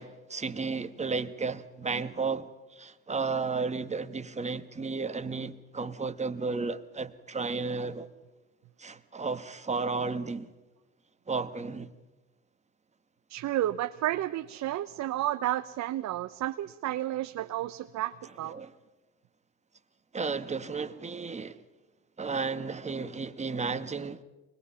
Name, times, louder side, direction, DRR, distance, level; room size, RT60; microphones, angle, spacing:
voice 1, 0.0-8.1 8.8-10.5 11.3-11.9 18.4-18.7 20.1-21.6 22.2-24.2, right 4 dB, 20° right, 1.3 m, -33 dB
voice 2, 13.3-18.6, right 13 dB, 50° right, 0.8 m, -31 dB
24.5 x 21.0 x 5.6 m
supercardioid pair, 85°, 37 cm